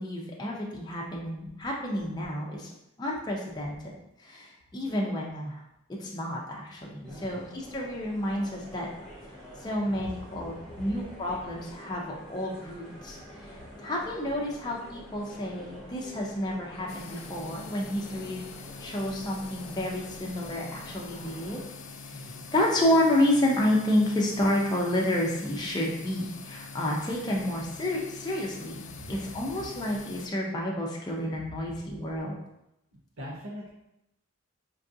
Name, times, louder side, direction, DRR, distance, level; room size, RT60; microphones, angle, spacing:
voice 1, 0.0-2.7 3.0-3.9 4.2-5.6 6.0-8.9 9.6-18.4 18.8-21.6 22.1-22.2 22.5-32.3, left 1 dB, 20° left, -2 dB, 0.4 m, -30 dB
sound 1, 7.0-21.6, equal, 5° left, 0.8 m, -47 dB
voice 2, 7.0-7.4 22.1-22.4 28.9-29.1 29.5-29.7 33.2-33.7, equal, 80° right, -4 dB, 0.7 m, -42 dB
sound 2, 16.9-30.3, left 4 dB, 80° left, 0.4 m, -44 dB
4.5 x 2.4 x 2.6 m, 0.86 s
head